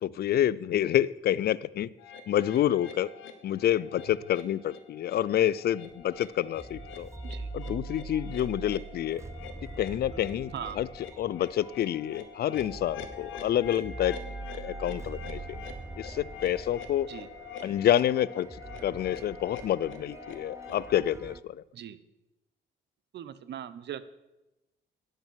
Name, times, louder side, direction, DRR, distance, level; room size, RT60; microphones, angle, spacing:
voice 1, 0.0-1.9 2.3-3.1 3.4-7.1 7.5-9.2 9.8-10.9 11.2-14.2 14.5-15.6 16.0-17.1 17.6-18.5 18.8-21.6, left 11 dB, 55° left, 20 dB, 0.4 m, -28 dB
sound 1, 2.0-21.0, left 6 dB, 85° left, 1.1 m, -45 dB
sound 2, 5.9-21.4, right 3 dB, 15° right, 0.5 m, -43 dB
voice 2, 23.1-24.1, right 10 dB, 60° right, 15 dB, 0.7 m, -39 dB
11.0 x 6.6 x 6.3 m, 0.98 s
cardioid pair, 90°, 20 cm